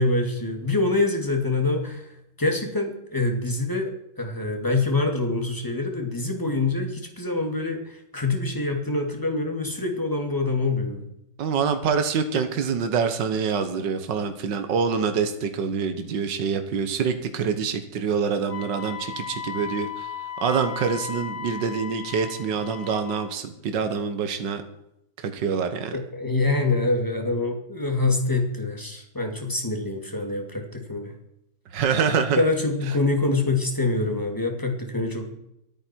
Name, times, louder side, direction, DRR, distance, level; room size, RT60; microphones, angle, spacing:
voice 1, 0.0-2.1 2.4-11.0 25.9-31.1 32.4-35.3, left 2 dB, 10° left, 3 dB, 2.6 m, -25 dB
voice 2, 11.4-20.1 20.4-24.6 25.2-25.9 31.7-32.4, right 6 dB, 75° right, 8 dB, 1.9 m, -25 dB
Wind instrument woodwind instrument, 18.5-23.3, left 7 dB, 25° right, 4.1 m, -36 dB
24.5 x 9.2 x 4.6 m, 0.79 s
omnidirectional pair, 1.9 m